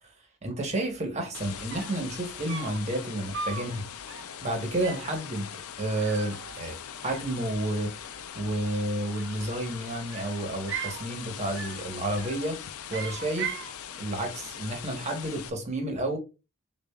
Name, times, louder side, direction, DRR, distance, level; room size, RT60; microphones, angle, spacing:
voice 1, 0.4-3.9 4.4-5.5 5.8-6.8 7.0-7.9 8.3-12.6 12.9-13.5 14.0-16.2, right 1 dB, 30° right, 1.1 m, -31 dB
sound 1, 1.3-15.5, left 8 dB, 90° left, 0.5 m, -41 dB
sound 2, 1.4-1.5 1.7-2.0 2.5-2.9 3.3-3.7 4.1-4.4 4.8-5.1 5.9-6.8 7.1-7.8 9.0-9.6 10.1-11.0 11.5-11.9 12.2-12.5 12.9-13.7, right 6 dB, 60° right, 0.6 m, -38 dB
6.7 x 2.4 x 2.3 m
head